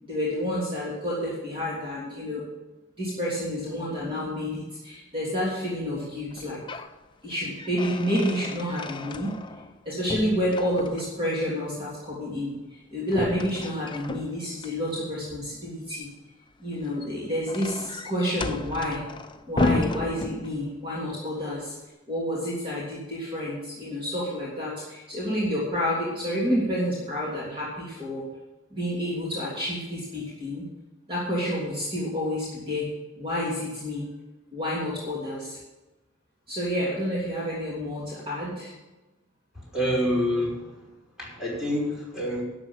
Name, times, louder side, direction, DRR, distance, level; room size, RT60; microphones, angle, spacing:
voice 1, 0.0-2.4 3.0-6.6 7.2-9.3 9.8-12.5 12.9-16.1 16.6-19.0 19.5-21.7 22.1-28.2 28.7-30.6 31.1-32.9 33.2-34.1 34.5-35.6 36.5-38.7, equal, 25° right, -6 dB, 3.2 m, -29 dB
sound 1, 6.3-7.0 7.3-9.8 10.1-11.3 13.1-14.7 16.7-20.9, left 2 dB, 25° left, 0.6 m, -33 dB
voice 2, 39.7-40.8 41.2-42.4, equal, 5° right, -6 dB, 5.4 m, -27 dB
12.0 x 8.0 x 7.4 m, 1.1 s
head